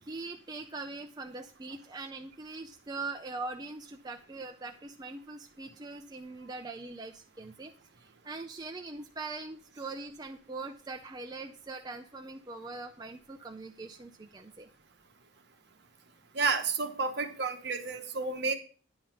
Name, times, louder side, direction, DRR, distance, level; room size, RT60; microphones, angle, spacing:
voice 1, 0.0-7.7 8.0-14.7, right 3 dB, 20° right, 4 dB, 0.4 m, -42 dB
voice 2, 16.3-18.5, right 4 dB, 60° right, 7 dB, 1.0 m, -31 dB
9.9 x 4.0 x 6.4 m, 0.39 s
head